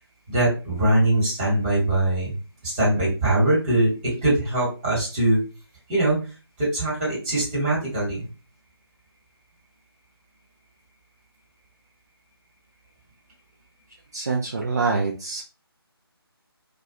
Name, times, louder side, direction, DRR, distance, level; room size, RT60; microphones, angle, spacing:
voice 1, 0.3-2.3 2.6-3.9 4.2-5.4 5.9-6.2 6.6-8.3, right 1 dB, 20° right, -6 dB, 1.3 m, -22 dB
voice 2, 14.1-15.4, right 4 dB, 40° right, 0 dB, 0.4 m, -25 dB
2.4 x 2.3 x 2.7 m, 0.32 s
figure-of-eight pair, 155°, 13 cm